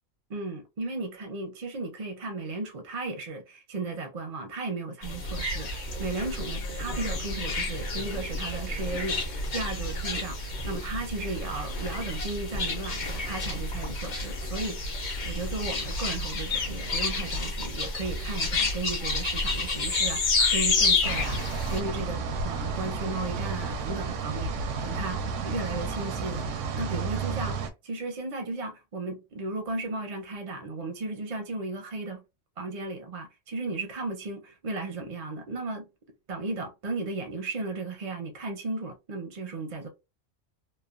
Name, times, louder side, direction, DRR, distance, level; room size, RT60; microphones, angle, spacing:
voice 1, 0.3-32.2 32.6-35.9 36.3-39.9, right 3 dB, 50° right, 0.5 m, -35 dB
sound 1, 5.0-21.8, left 3 dB, 45° left, 0.7 m, -30 dB
sound 2, 21.0-27.7, right 4 dB, 85° right, 0.9 m, -32 dB
3.1 x 2.1 x 2.3 m
omnidirectional pair, 1.2 m